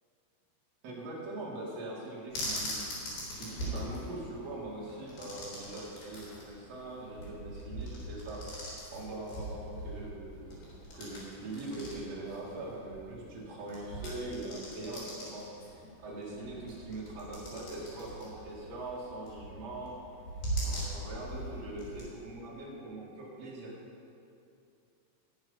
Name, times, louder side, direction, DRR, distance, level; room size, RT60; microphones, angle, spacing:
voice 1, 0.8-2.8 3.4-8.4 8.9-20.0 20.6-23.8, right 2 dB, 45° right, -5 dB, 3.0 m, -42 dB
sound 1, 2.3-22.1, right 1 dB, 60° left, 4.9 m, -41 dB
16.5 x 7.2 x 5.7 m, 2.6 s
omnidirectional pair, 5.2 m